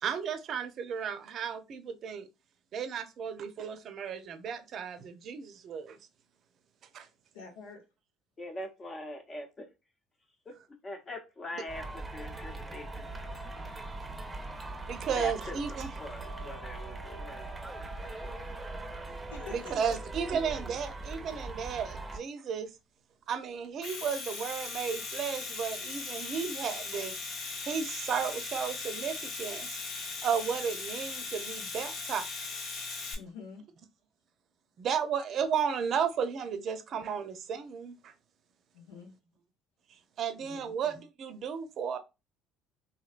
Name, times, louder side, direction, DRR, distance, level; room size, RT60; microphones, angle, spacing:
voice 1, 0.0-2.3 2.7-6.0 6.9-7.1 14.9-15.9 19.5-22.7 23.3-27.1 27.6-29.8 30.2-32.3 32.7-32.8 34.8-38.1 40.2-42.0, right 7 dB, 55° right, 0.5 m, -34 dB
voice 2, 7.3-7.8 19.3-19.8 33.2-33.6 38.7-39.1 40.4-40.7, left 5 dB, 90° left, 0.8 m, -46 dB
voice 3, 8.4-9.7 10.4-10.6 10.8-13.4 15.2-17.6 18.0-18.4 20.4-20.6, left 1 dB, 35° left, 0.8 m, -43 dB
sound 1, 11.7-22.2, right 2 dB, 15° right, 0.7 m, -41 dB
Domestic sounds home sounds, 23.6-33.1, left 4 dB, 60° left, 1.0 m, -38 dB
3.1 x 2.6 x 2.4 m
hypercardioid pair, 70°, 0 cm